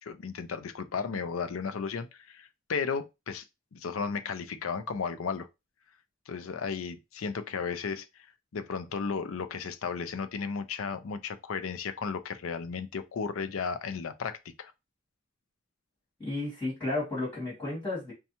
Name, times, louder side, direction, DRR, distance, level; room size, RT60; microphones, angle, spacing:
voice 1, 0.0-3.4 3.7-5.5 6.3-8.3 8.5-14.7, left 5 dB, 75° left, 0.5 m, -34 dB
voice 2, 16.2-18.1, left 2 dB, 10° left, 2.3 m, -33 dB
5.3 x 2.3 x 2.8 m
head